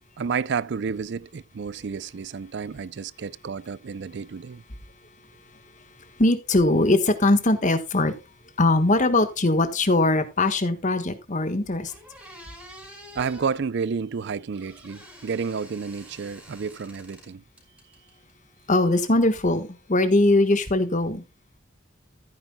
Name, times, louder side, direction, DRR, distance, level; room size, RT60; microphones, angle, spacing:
voice 1, 0.2-4.6 13.1-17.4, right 5 dB, 60° right, 0.4 m, -30 dB
voice 2, 5.8-8.1 8.6-11.9 18.7-21.2, left 2 dB, 40° left, 1.4 m, -21 dB
sound 1, 11.4-11.5 11.9-13.6 14.5-17.3 17.6-18.3, equal, 5° right, 4.5 m, -48 dB
14.5 x 9.4 x 2.2 m
head